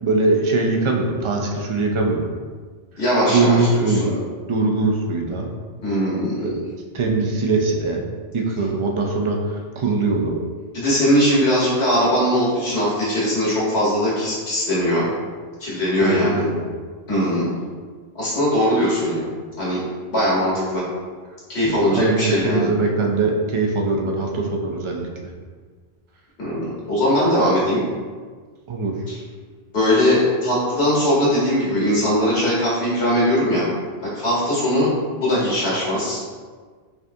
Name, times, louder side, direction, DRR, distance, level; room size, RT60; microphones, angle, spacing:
voice 1, 0.0-2.2 3.3-4.2 4.5-5.5 6.4-6.6 6.9-8.1 8.3-10.4 16.0-16.7 21.6-25.3 28.7-29.0, right 3 dB, 55° right, 1 dB, 0.3 m, -22 dB
voice 2, 3.0-4.0 5.8-6.6 10.7-15.1 15.6-16.4 17.1-17.6 18.1-19.3 19.6-19.8 20.1-20.8 21.5-22.7 26.4-27.8 29.1-29.2 29.7-33.6 34.0-34.9 35.2-36.2, equal, 85° left, -7 dB, 1.7 m, -20 dB
4.7 x 2.4 x 2.6 m, 1.5 s
omnidirectional pair, 1.0 m